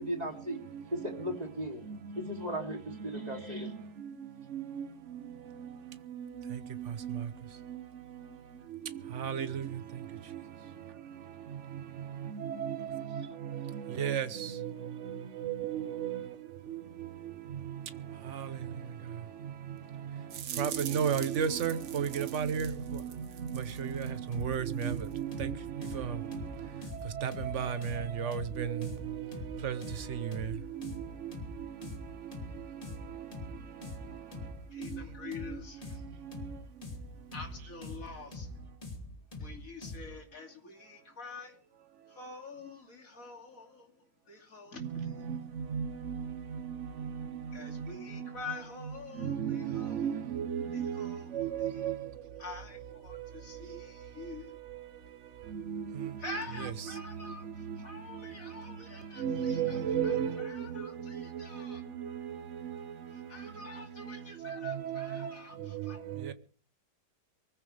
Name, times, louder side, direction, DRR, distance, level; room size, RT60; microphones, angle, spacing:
voice 1, 0.0-0.6 0.9-1.8 2.1-3.7, equal, 20° right, 2.8 m, -37 dB
voice 2, 0.7-1.3 1.9-2.5 3.2-3.7 4.0-4.1 4.5-5.2 5.6-5.7 6.1-7.3 7.7-7.8 8.8-9.8 10.3-10.4 11.5-16.3 16.7-18.7 19.4-19.8 20.5-26.5 27.0-31.3 31.6-31.7 33.1-33.2 34.8-35.0 35.5-35.6 36.4-36.6 44.8-48.3 49.2-52.1 53.1-53.3 54.7-54.8 55.5-57.8 59.2-62.8 63.2-63.5 64.0-66.3, right 8 dB, 50° right, 1.1 m, -35 dB
sound 1, 20.3-24.1 24.4-25.2, right 9 dB, 85° right, 1.7 m, -44 dB
sound 2, 24.3-40.2, left 2 dB, 20° left, 2.5 m, -44 dB
voice 3, 32.5-32.9 33.2-33.3 34.6-36.2 36.7-36.8 37.3-38.5 39.4-41.6 42.1-45.2 47.5-50.2 50.7-51.9 52.4-54.6 56.2-59.8 60.0-61.8 63.1-66.0, left 3 dB, 45° left, 3.1 m, -47 dB
23.5 x 15.0 x 3.4 m
omnidirectional pair, 2.0 m